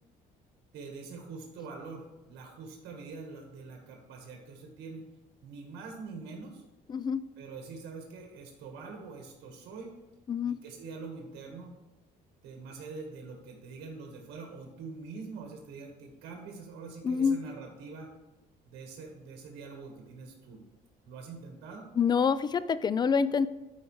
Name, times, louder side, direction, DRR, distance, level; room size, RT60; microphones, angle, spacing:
voice 1, 0.7-5.1 5.4-6.6 7.4-9.9 10.5-11.7 12.4-18.1 18.6-20.6 21.0-21.9, right 4 dB, 80° right, 2 dB, 1.4 m, -44 dB
voice 2, 6.9-7.2 10.3-10.6 17.0-17.4 22.0-23.5, left 6 dB, 25° left, 15 dB, 0.3 m, -26 dB
12.0 x 4.9 x 3.1 m, 1.0 s
cardioid pair, 110°, 17 cm